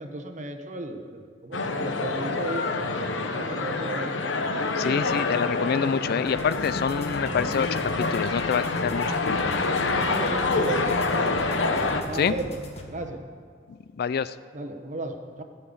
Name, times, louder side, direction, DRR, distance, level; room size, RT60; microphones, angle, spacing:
voice 1, 0.0-4.1 4.8-5.0 9.9-11.2 12.0-12.5 12.9-13.2 14.5-15.4, right 2 dB, 40° right, 5 dB, 1.0 m, -35 dB
sound 1, 1.5-12.0, left 3 dB, 85° left, 0.9 m, -27 dB
voice 2, 4.8-9.6 12.1-12.4 13.7-14.4, left 6 dB, 55° left, 15 dB, 0.3 m, -27 dB
sound 2, 6.3-12.9, left 1 dB, 35° left, 1.3 m, -40 dB
15.0 x 5.6 x 8.3 m, 2.1 s
head